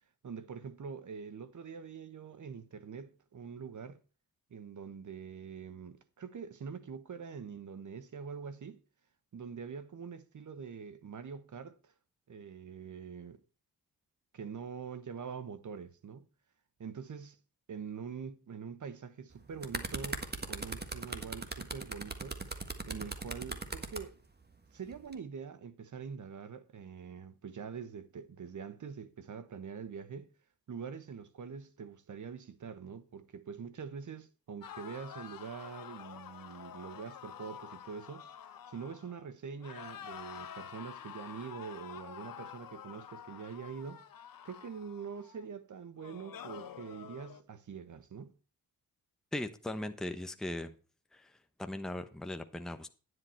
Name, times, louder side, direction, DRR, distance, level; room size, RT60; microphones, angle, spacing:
voice 1, 0.2-4.0 4.5-8.8 9.3-11.9 12.3-13.4 14.3-16.3 16.8-17.4 17.7-22.4 22.9-24.2 24.7-30.3 30.7-38.3 38.7-44.0 44.4-48.4, right 6 dB, 50° right, 1.1 m, -44 dB
sound 1, 19.3-24.0 24.9-25.1, right 3 dB, 25° right, 1.5 m, -39 dB
sound 2, 34.6-39.3 39.6-45.4 46.0-47.4, left 9 dB, 60° left, 1.0 m, -48 dB
voice 2, 49.3-50.7 51.1-51.3 51.6-52.9, left 1 dB, ahead, 0.9 m, -38 dB
9.8 x 7.9 x 4.4 m
cardioid pair, 55°, 38 cm